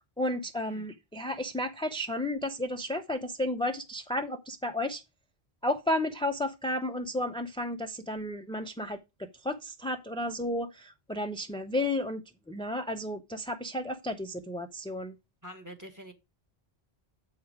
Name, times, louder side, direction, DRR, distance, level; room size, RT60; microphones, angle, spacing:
voice 1, 0.2-5.0 5.6-12.2 12.5-15.1, left 1 dB, 10° left, 0.4 m, -32 dB
voice 2, 15.4-16.1, equal, 20° right, 1.3 m, -46 dB
8.1 x 4.9 x 4.7 m
omnidirectional pair, 1.0 m